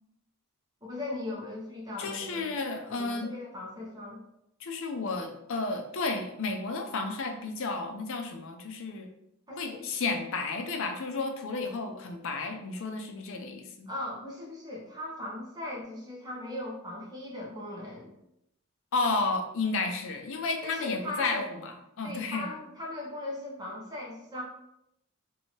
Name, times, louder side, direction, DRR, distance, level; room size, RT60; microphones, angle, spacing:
voice 1, 0.8-2.5 2.9-4.2 9.5-9.9 13.9-18.1 20.6-21.5 22.0-24.4, left 1 dB, 20° right, -3 dB, 0.9 m, -38 dB
voice 2, 2.0-3.3 4.6-9.1 9.6-13.9 18.9-22.5, left 3 dB, 60° left, 4 dB, 0.5 m, -32 dB
3.0 x 2.7 x 4.3 m, 0.81 s
head